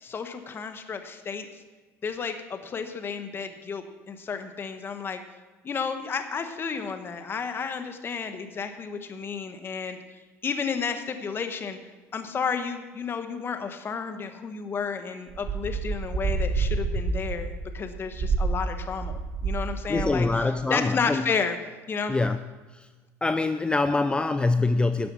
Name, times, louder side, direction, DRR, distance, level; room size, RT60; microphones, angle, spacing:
voice 1, 0.0-1.5 2.0-5.2 5.6-10.0 10.4-11.8 12.1-20.3 20.7-21.6 21.9-22.1, left 5 dB, 35° left, 8 dB, 1.2 m, -32 dB
sound 1, 15.3-19.7 19.9-20.3, right 4 dB, 55° right, 2.5 m, -28 dB
voice 2, 19.9-21.3 22.1-22.4 22.7-22.9 23.2-25.1, left 3 dB, 15° left, 10 dB, 0.5 m, -24 dB
11.5 x 7.6 x 6.2 m, 1.3 s
supercardioid pair, 95°, 7 cm